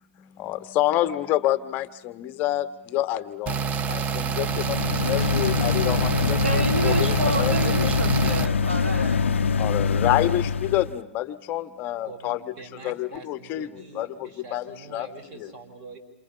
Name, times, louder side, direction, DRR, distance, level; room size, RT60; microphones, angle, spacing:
voice 1, 0.2-8.0 9.6-12.4 12.8-15.1 15.3-15.5, left 14 dB, 30° left, 1.3 m, -28 dB
sound 1, 3.5-8.5, right 6 dB, 20° right, 0.9 m, -27 dB
sound 2, 4.3-10.9, left 5 dB, 70° left, 0.8 m, -24 dB
voice 2, 6.4-9.2, right 2 dB, 75° right, 3.1 m, -29 dB
voice 3, 12.0-16.0, right 4 dB, 40° right, 4.5 m, -44 dB
28.5 x 27.0 x 5.7 m
figure-of-eight pair, 115°, 7 cm